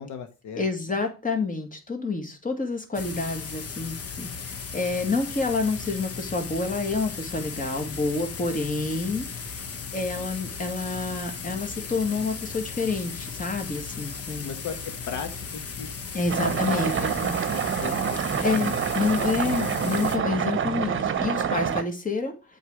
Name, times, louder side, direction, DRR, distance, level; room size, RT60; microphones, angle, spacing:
voice 1, 0.0-0.6 14.4-15.9 16.3-18.8 19.4-20.0, left 6 dB, 75° left, 7 dB, 1.2 m, -37 dB
voice 2, 0.6-9.5 9.9-14.5 16.1-17.4 18.4-22.6, left 3 dB, 25° left, 5 dB, 2.0 m, -28 dB
sound 1, 2.9-20.2, left 5 dB, 50° left, 1.2 m, -36 dB
sound 2, 16.3-21.8, right 7 dB, 40° right, 0.9 m, -27 dB
8.1 x 4.6 x 5.0 m, 0.31 s
cardioid pair, 90°, 30 cm